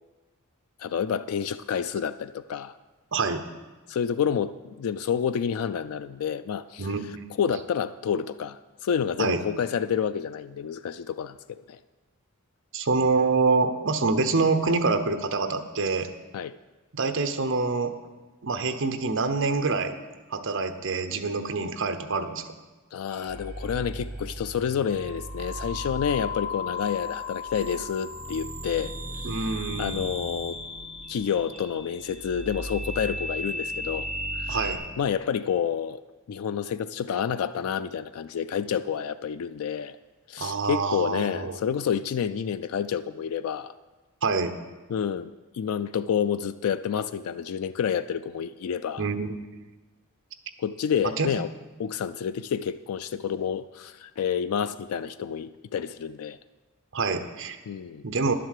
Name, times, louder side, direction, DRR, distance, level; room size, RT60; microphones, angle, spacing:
voice 1, 0.8-2.7 3.9-6.9 7.4-11.8 16.3-16.6 22.9-29.0 29.3-29.5 29.8-30.6 31.1-34.1 34.4-34.7 35.0-36.0 36.3-40.0 40.3-43.7 44.9-49.1 50.6-51.5 51.8-56.4 57.7-58.0, left 7 dB, 90° left, 13 dB, 0.3 m, -29 dB
voice 2, 3.1-3.4 6.8-7.2 9.2-9.4 12.7-16.1 16.9-17.9 18.4-20.0 20.3-22.4 29.2-30.1 34.5-34.8 40.4-41.6 44.2-44.5 49.0-49.4 51.2-51.3 56.9-57.6 58.0-58.3, right 4 dB, 60° right, 8 dB, 0.9 m, -26 dB
sound 1, 23.1-34.8, left 1 dB, 35° right, 1.6 m, -35 dB
11.0 x 7.7 x 6.6 m, 1.2 s
head